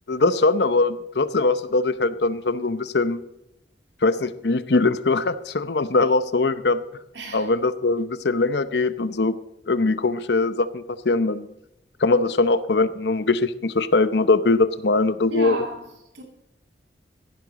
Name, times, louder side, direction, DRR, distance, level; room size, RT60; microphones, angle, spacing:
voice 1, 0.1-3.2 4.0-6.8 7.3-9.4 9.7-11.5 12.0-15.6, left 3 dB, 70° left, 0.8 m, -21 dB
voice 2, 7.1-7.5 15.3-16.2, right 3 dB, 80° right, 2.5 m, -33 dB
15.5 x 11.0 x 4.1 m
head